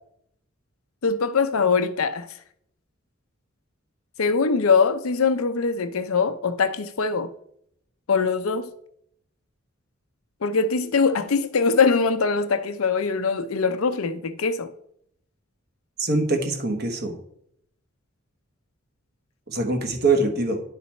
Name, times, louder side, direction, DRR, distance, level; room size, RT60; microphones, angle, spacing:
voice 1, 1.0-2.3 4.2-7.3 8.1-8.7 10.4-14.7, left 5 dB, 90° left, 0.6 m, -22 dB
voice 2, 16.0-17.2 19.5-20.6, right 3 dB, 50° right, 1.2 m, -23 dB
10.5 x 4.1 x 4.2 m
head